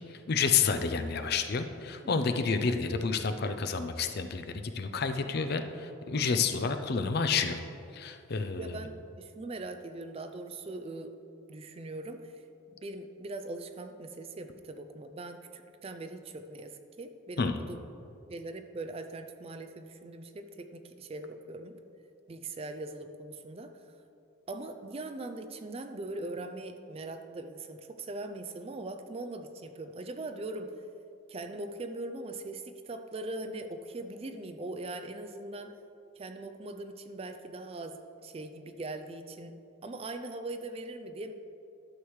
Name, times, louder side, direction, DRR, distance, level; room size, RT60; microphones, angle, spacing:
voice 1, 0.1-7.6 7.9-8.8 17.4-17.6, left 5 dB, 50° left, 8 dB, 0.4 m, -29 dB
voice 2, 8.6-11.2 11.5-12.3 12.8-17.8 18.3-21.7 22.3-23.7 24.5-30.7 31.3-35.7 36.2-41.3, right 2 dB, 30° right, 8 dB, 0.3 m, -41 dB
11.5 x 6.3 x 3.1 m, 2.7 s
head